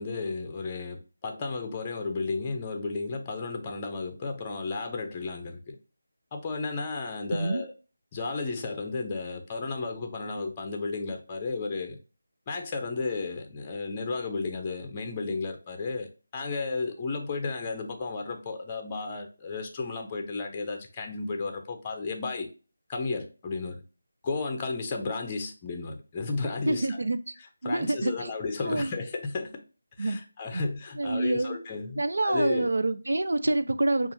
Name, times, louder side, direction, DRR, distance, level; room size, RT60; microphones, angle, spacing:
voice 1, 0.0-5.8 6.3-7.7 8.1-12.0 12.5-16.1 16.3-22.5 22.9-23.8 24.2-27.0 27.6-29.6 30.0-32.7, left 3 dB, 20° left, 0.5 m, -33 dB
voice 2, 26.7-27.3 27.6-28.3 28.7-28.9 30.0-30.2 30.5-30.6 31.0-31.6 32.0-34.1, right 2 dB, 75° right, 0.5 m, -27 dB
5.4 x 2.4 x 2.6 m
figure-of-eight pair, 165°, 0 cm